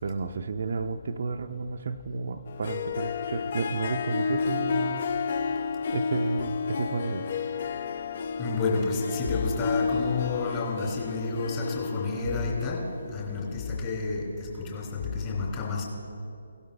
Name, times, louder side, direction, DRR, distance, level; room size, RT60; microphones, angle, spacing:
voice 1, 0.0-5.0 5.9-7.3, right 4 dB, 45° right, 7 dB, 0.4 m, -32 dB
Harp, 2.5-13.7, left 5 dB, 40° left, 0.4 m, -31 dB
voice 2, 8.4-12.8 13.1-15.8, left 4 dB, 25° left, -2 dB, 2.6 m, -30 dB
17.0 x 12.0 x 2.3 m, 2.6 s
figure-of-eight pair, 140°, 0 cm